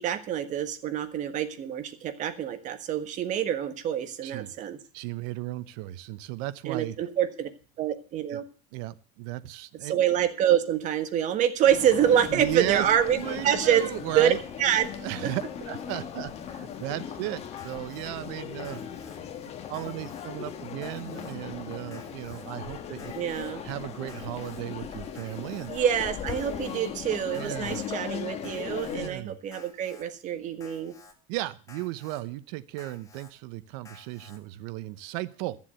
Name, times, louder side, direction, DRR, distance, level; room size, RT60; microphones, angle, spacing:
voice 1, 0.0-4.8 6.7-7.5 7.8-8.4 9.9-13.2 13.4-13.9 14.1-14.3 14.6-14.9 23.1-23.6 25.7-30.9, right 10 dB, 40° right, 9 dB, 1.5 m, -26 dB
voice 2, 4.2-4.5 4.9-7.0 8.3-8.4 8.7-9.9 12.3-12.9 13.1-14.4 15.0-18.8 19.7-23.1 23.6-25.7 27.3-27.8 28.9-29.4 31.3-35.6, right 16 dB, 65° right, 16 dB, 0.9 m, -35 dB
sound 1, 11.6-29.1, left 8 dB, 35° left, 1.6 m, -38 dB
Alarm, 17.6-18.1 18.6-19.2 19.7-20.3 20.8-21.4 21.9-22.4 23.0-23.5 24.1-24.6 25.2-25.7 26.3-26.8 27.3-27.9 28.4-29.0 29.5-30.0 30.6-31.1 31.7-32.2 32.8-33.3 33.9-34.4, left 3 dB, 15° left, 2.1 m, -52 dB
13.5 x 7.4 x 7.6 m, 0.39 s
cardioid pair, 150°, 19 cm